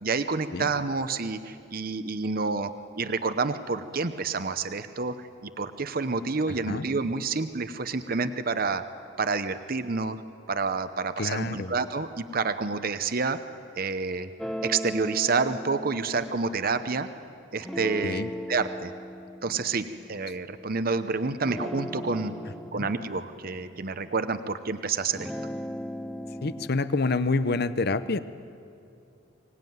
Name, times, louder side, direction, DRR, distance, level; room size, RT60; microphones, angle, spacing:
voice 1, 0.0-2.7 3.0-8.8 9.2-10.2 10.5-13.4 13.8-14.3 14.6-17.1 17.5-18.9 19.4-22.3 22.7-25.3, right 4 dB, 45° right, 11 dB, 0.8 m, -29 dB
voice 2, 11.2-11.7 18.0-18.3 22.7-22.9 26.4-28.2, left 3 dB, 55° left, 13 dB, 0.7 m, -27 dB
sound 1, 14.4-17.1 17.6-21.0 21.4-24.6 25.0-26.7, equal, ahead, 0.8 m, -38 dB
24.5 x 18.5 x 9.4 m, 2.6 s
head